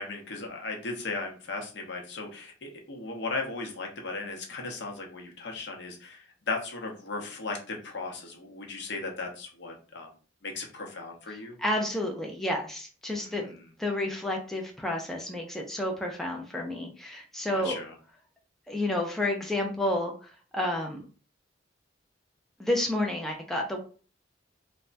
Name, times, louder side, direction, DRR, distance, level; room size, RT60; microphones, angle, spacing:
voice 1, 0.0-10.1 10.4-11.6 13.2-13.4 17.5-17.9, left 3 dB, 65° left, 1 dB, 0.8 m, -36 dB
voice 2, 11.3-17.8 18.7-21.0 22.6-23.8, left 1 dB, ahead, 0 dB, 0.4 m, -31 dB
3.3 x 2.1 x 2.5 m, 0.38 s
head